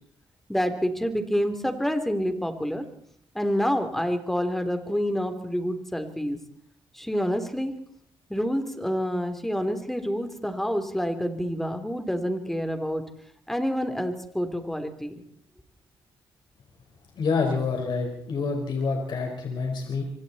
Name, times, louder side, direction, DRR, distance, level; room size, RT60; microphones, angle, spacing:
voice 1, 0.5-2.8 3.3-6.4 6.9-7.7 8.3-13.0 13.5-15.2, equal, 5° left, 7 dB, 3.4 m, -28 dB
voice 2, 17.1-20.0, left 4 dB, 60° left, 2 dB, 4.9 m, -27 dB
28.0 x 24.5 x 4.3 m, 0.63 s
cardioid pair, 110°, 9 cm